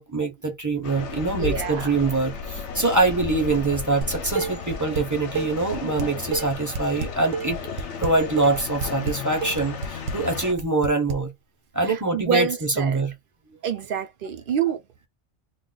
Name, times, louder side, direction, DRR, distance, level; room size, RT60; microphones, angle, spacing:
voice 1, 0.0-7.6 8.0-11.3 11.7-13.1 13.7-13.8 14.6-14.7, right 3 dB, 20° right, 0.7 m, -24 dB
sound 1, 0.8-10.5, left 5 dB, 80° left, 0.9 m, -34 dB
voice 2, 1.3-1.9 11.9-13.0 13.6-14.8, right 8 dB, 55° right, 0.7 m, -27 dB
Dishes pots and pans, 4.0-5.0 5.4-11.2, right 4 dB, 80° right, 1.0 m, -30 dB
2.4 x 2.4 x 3.7 m
omnidirectional pair, 1.2 m